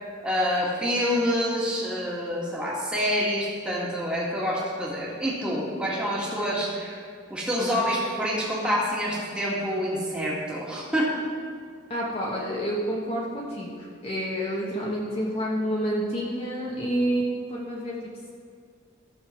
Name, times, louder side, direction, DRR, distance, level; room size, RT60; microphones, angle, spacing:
voice 1, 0.2-7.0 7.3-11.2, equal, 5° right, -6 dB, 2.0 m, -27 dB
voice 2, 11.9-18.0, equal, 30° left, -5 dB, 1.2 m, -29 dB
14.0 x 7.0 x 4.5 m, 2.2 s
head